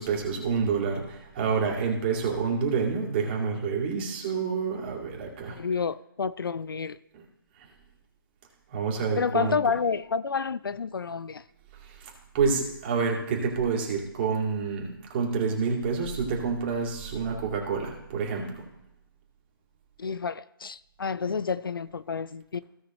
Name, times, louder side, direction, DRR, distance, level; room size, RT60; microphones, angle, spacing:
voice 1, 0.0-5.6 8.7-9.6 11.8-18.6 21.3-21.4, right 5 dB, 30° right, 2.5 m, -28 dB
voice 2, 5.5-7.0 9.2-11.4 20.0-22.6, left 5 dB, 70° left, 0.4 m, -29 dB
16.5 x 6.0 x 3.1 m
figure-of-eight pair, 150°, 12 cm